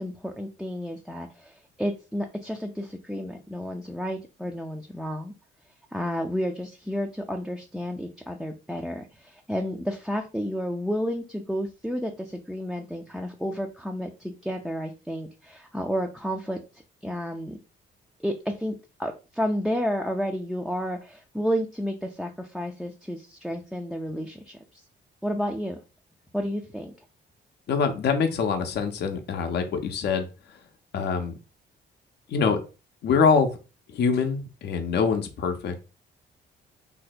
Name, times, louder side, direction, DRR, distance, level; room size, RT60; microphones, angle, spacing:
voice 1, 0.0-5.3 5.9-16.6 17.0-17.6 18.2-18.7 19.0-24.8 25.2-25.8 26.3-26.9, equal, ahead, 2 dB, 0.4 m, -31 dB
voice 2, 27.7-30.3 30.9-31.3 32.3-32.6 33.0-33.6 33.9-35.8, left 5 dB, 55° left, 5 dB, 0.6 m, -24 dB
2.7 x 2.1 x 4.0 m, 0.31 s
cardioid pair, 90°, 20 cm